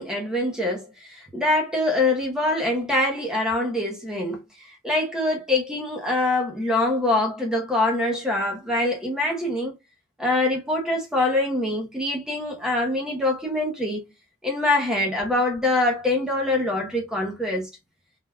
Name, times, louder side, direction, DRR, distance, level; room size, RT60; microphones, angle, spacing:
voice 1, 0.0-4.4 4.8-9.8 10.2-14.0 14.4-17.7, left 2 dB, 5° right, 0.6 m, -24 dB
3.3 x 2.2 x 2.3 m
head